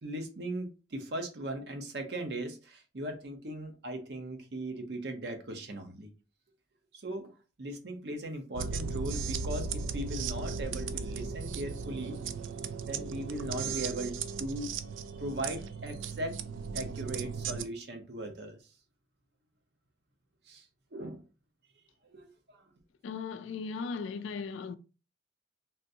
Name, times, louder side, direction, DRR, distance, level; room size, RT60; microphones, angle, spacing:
voice 1, 0.0-6.1 6.9-12.2 12.8-14.8 15.1-16.4 16.7-18.6 20.5-20.7 20.9-21.2 22.0-22.7, right 1 dB, 60° right, 0.8 m, -38 dB
sound 1, 8.5-17.6, right 5 dB, 85° right, 0.3 m, -36 dB
voice 2, 23.0-24.8, left 5 dB, 85° left, 0.3 m, -37 dB
3.5 x 2.6 x 2.7 m
head